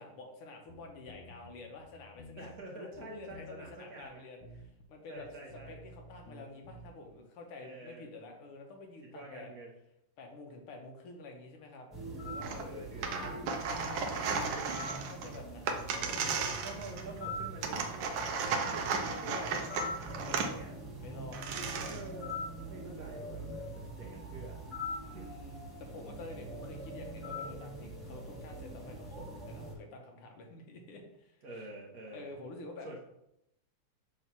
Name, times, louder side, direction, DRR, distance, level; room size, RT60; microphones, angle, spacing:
voice 1, 0.0-4.4 4.9-5.3 5.7-9.5 10.2-11.9 12.2-12.9 13.9-14.5 14.9-16.5 19.1-19.7 20.2-20.5 21.0-21.4 22.9-23.1 25.0-31.6 32.1-32.9, left 3 dB, 85° left, 2 dB, 2.0 m, -49 dB
sound 1, 0.7-2.6 2.9-3.7 4.0-4.1 4.4-4.9 5.2-7.1, left 1 dB, 70° left, 1.4 m, -52 dB
voice 2, 2.4-4.2 5.1-5.8 7.6-8.1 9.0-9.7 12.6-13.4 13.9-14.6 16.6-19.7 20.3-20.7 21.8-22.4 22.7-24.6 25.0-25.3 31.4-32.3 32.8-33.0, right 2 dB, 50° right, -2 dB, 1.4 m, -48 dB
sound 2, 11.9-29.7, equal, ahead, 1.7 m, -43 dB
sound 3, 12.4-12.6 12.9-17.2 17.6-20.5 21.0-21.1 21.3-22.1, right 5 dB, 70° right, 1.5 m, -35 dB
7.0 x 3.2 x 5.8 m, 0.82 s
omnidirectional pair, 2.4 m